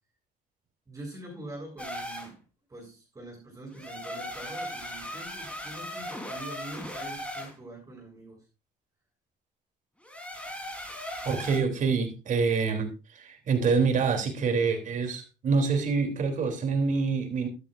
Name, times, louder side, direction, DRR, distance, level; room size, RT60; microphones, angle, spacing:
voice 1, 0.9-2.4 2.7-8.4, right 1 dB, 20° right, 7.7 m, -44 dB
sound 1, 1.8-2.3 3.7-7.5 10.0-11.6, equal, 5° left, 3.8 m, -38 dB
voice 2, 11.2-12.9 13.1-17.5, right 5 dB, 50° right, 3.3 m, -26 dB
13.0 x 12.0 x 2.6 m
cardioid pair, 110°, 17 cm